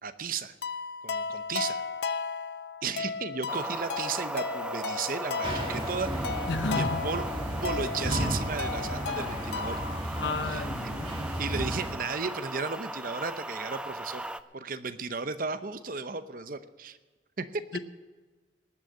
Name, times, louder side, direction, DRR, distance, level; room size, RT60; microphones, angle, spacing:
voice 1, 0.0-0.5 1.0-1.8 2.8-6.1 6.7-7.2 7.6-9.8 10.5-10.7 11.1-14.2 14.5-17.0 17.4-17.6, right 4 dB, 50° right, 0.8 m, -34 dB
sound 1, 0.6-10.0, left 5 dB, 60° left, 0.5 m, -35 dB
sound 2, 3.5-14.4, right 1 dB, 5° right, 0.4 m, -38 dB
sound 3, 5.4-11.9, right 1 dB, 30° right, 2.3 m, -34 dB
voice 2, 6.5-7.1 10.1-11.2 17.7-17.8, left 3 dB, 75° left, 1.0 m, -32 dB
19.5 x 6.5 x 8.6 m
head